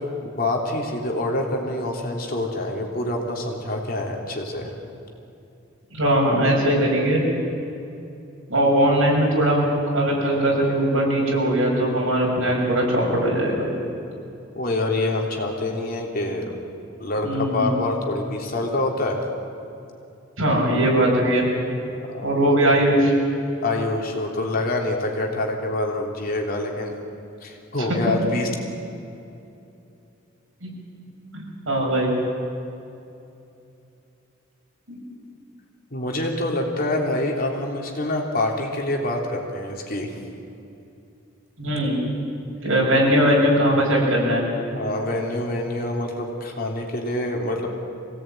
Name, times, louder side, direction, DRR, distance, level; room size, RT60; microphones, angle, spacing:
voice 1, 0.0-4.7 14.5-16.5 17.0-19.2 22.1-22.6 23.6-26.9 27.4-28.5 35.9-40.2 44.7-47.7, left 2 dB, 45° left, 0 dB, 3.2 m, -26 dB
voice 2, 5.9-7.2 8.5-9.7 9.9-13.7 17.2-17.7 20.4-21.5 22.2-23.1 30.6-30.7 31.3-32.1 34.9-35.0 41.6-42.0 42.6-44.4, right 1 dB, 75° right, -2 dB, 7.1 m, -20 dB
24.5 x 17.5 x 9.3 m, 2.7 s
head